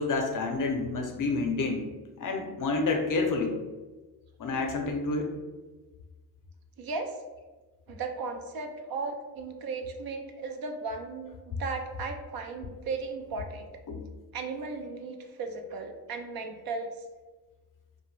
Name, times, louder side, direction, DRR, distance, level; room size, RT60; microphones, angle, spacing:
voice 1, 0.0-1.9 2.2-3.6 4.4-5.3 13.9-14.0, left 3 dB, 50° left, 3 dB, 0.6 m, -29 dB
voice 2, 6.8-7.1 7.9-13.7 14.3-17.0, right 4 dB, 55° right, 5 dB, 0.5 m, -36 dB
2.5 x 2.2 x 3.1 m, 1.3 s
cardioid pair, 75°, 43 cm